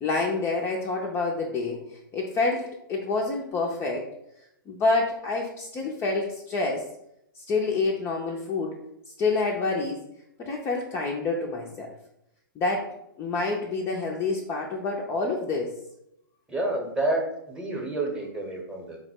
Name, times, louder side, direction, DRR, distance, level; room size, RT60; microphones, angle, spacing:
voice 1, 0.0-1.8 2.1-4.1 4.7-6.8 7.4-8.8 9.2-10.0 10.4-11.9 12.6-15.7, left 3 dB, 20° left, -1 dB, 0.4 m, -27 dB
voice 2, 16.5-19.0, right 2 dB, 5° right, -1 dB, 0.8 m, -29 dB
4.1 x 2.0 x 4.3 m, 0.80 s
hypercardioid pair, 130°, 12 cm